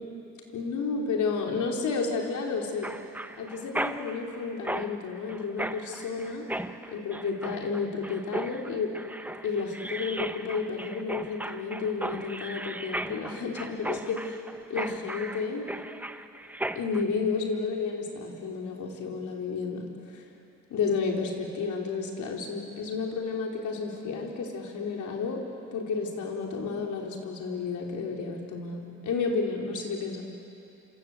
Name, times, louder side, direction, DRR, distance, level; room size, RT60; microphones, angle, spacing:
voice 1, 0.5-2.9 3.4-6.5 6.9-8.9 9.4-14.4 14.7-15.7 16.7-19.9 20.1-20.2 20.7-25.4 25.7-30.2, left 4 dB, 75° left, 0 dB, 4.3 m, -31 dB
Mechanisms, 2.8-17.0, right 1 dB, 5° right, 1.0 m, -36 dB
27.0 x 27.0 x 8.1 m, 2.8 s
cardioid pair, 90°, 30 cm